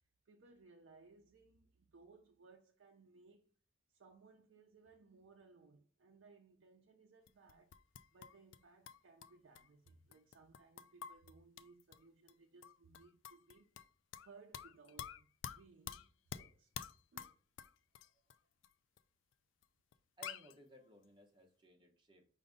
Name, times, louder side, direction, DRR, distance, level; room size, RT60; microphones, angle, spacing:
voice 1, 0.3-3.5 3.9-7.7 8.1-13.7 14.1-16.7 17.1-17.3, right 4 dB, 75° right, 0.5 m, -63 dB
Stainless Steel Bottle with Water Percussion Improv, 7.3-8.6 8.9-12.0 12.3-12.4 12.6-14.3 14.5-18.4 18.6-18.7 19.0-19.1 19.6-19.7 19.9-20.0 20.2-20.5, left 8 dB, 70° left, 0.3 m, -49 dB
voice 2, 20.2-22.3, right 1 dB, 25° right, 0.9 m, -61 dB
5.1 x 2.6 x 3.5 m
head